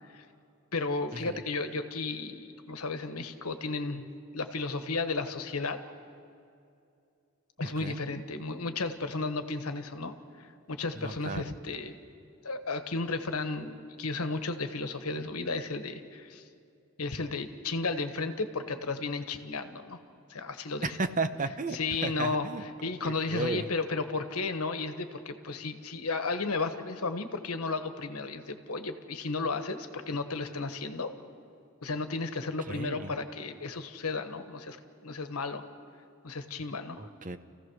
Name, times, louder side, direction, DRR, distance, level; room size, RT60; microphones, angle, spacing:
voice 1, 0.7-4.0 4.3-5.8 7.6-10.1 10.4-12.0 12.4-16.4 17.0-20.0 20.3-21.0 21.7-31.1 31.8-34.8 35.0-35.6 36.2-37.0, left 3 dB, 85° left, 8 dB, 1.3 m, -33 dB
voice 2, 7.6-8.0 10.9-11.5 20.8-22.6 23.0-23.7 32.7-33.1 37.0-37.4, right 3 dB, 35° right, 10 dB, 0.8 m, -34 dB
30.0 x 15.5 x 6.4 m, 2.5 s
head